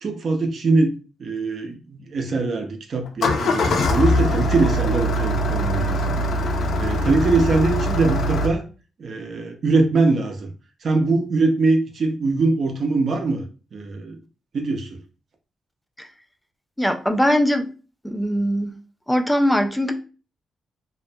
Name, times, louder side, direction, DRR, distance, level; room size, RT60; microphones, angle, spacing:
voice 1, 0.0-6.1 6.8-8.6 9.0-10.5 10.8-13.4 13.7-14.2 14.5-15.0, right 3 dB, 50° right, 4 dB, 0.6 m, -22 dB
Engine starting, 3.1-8.5, left 1 dB, 70° left, 0.5 m, -22 dB
voice 2, 16.8-17.7 18.0-18.8 19.1-19.9, equal, 5° left, 6 dB, 0.4 m, -21 dB
2.4 x 2.1 x 2.7 m, 0.35 s
cardioid pair, 120°, 0 cm